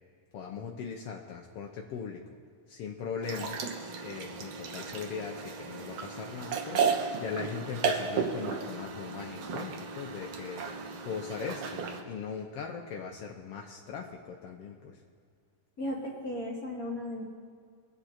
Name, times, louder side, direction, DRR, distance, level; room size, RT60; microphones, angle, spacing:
voice 1, 0.3-2.2 2.7-15.0, left 6 dB, 80° left, 0 dB, 1.3 m, -40 dB
sound 1, 3.2-12.0, right 5 dB, 65° right, 1.7 m, -34 dB
voice 2, 15.8-17.2, left 1 dB, 35° left, -3 dB, 1.8 m, -35 dB
23.0 x 9.6 x 4.3 m, 2.1 s
omnidirectional pair, 3.9 m